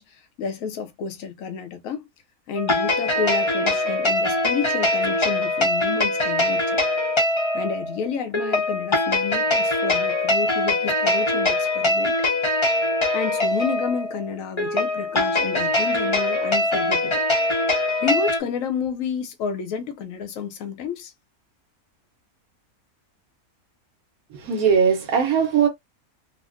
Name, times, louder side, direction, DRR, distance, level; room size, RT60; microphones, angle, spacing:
voice 1, 0.0-2.0 2.5-6.8 7.5-12.2 13.1-17.2 18.0-21.1, left 6 dB, 70° left, 1.0 m, -30 dB
sound 1, 2.6-18.4, left 2 dB, 25° left, 0.6 m, -22 dB
voice 2, 24.3-25.7, right 7 dB, 75° right, 1.1 m, -20 dB
3.5 x 2.1 x 2.4 m
omnidirectional pair, 1.6 m